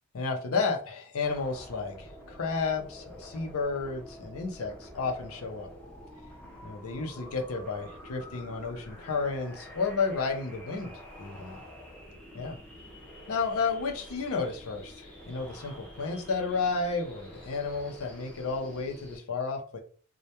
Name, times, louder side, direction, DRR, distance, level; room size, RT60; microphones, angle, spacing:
voice 1, 0.1-5.7 6.6-10.9 11.2-11.6 12.3-12.6 13.3-19.8, left 4 dB, 70° left, 4 dB, 0.5 m, -32 dB
sound 1, 1.2-19.2, equal, 5° left, 0.5 m, -48 dB
2.2 x 2.1 x 2.8 m, 0.42 s
head